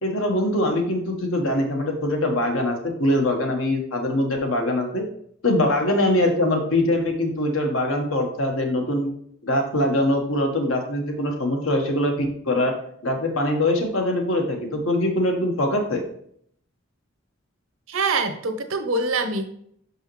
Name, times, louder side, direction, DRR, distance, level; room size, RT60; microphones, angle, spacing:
voice 1, 0.0-5.0 5.4-9.1 9.4-12.7 13.0-16.0, left 1 dB, 80° left, 3 dB, 1.4 m, -23 dB
voice 2, 17.9-19.5, right 3 dB, 85° right, 7 dB, 0.9 m, -24 dB
6.4 x 5.5 x 3.1 m, 0.66 s
head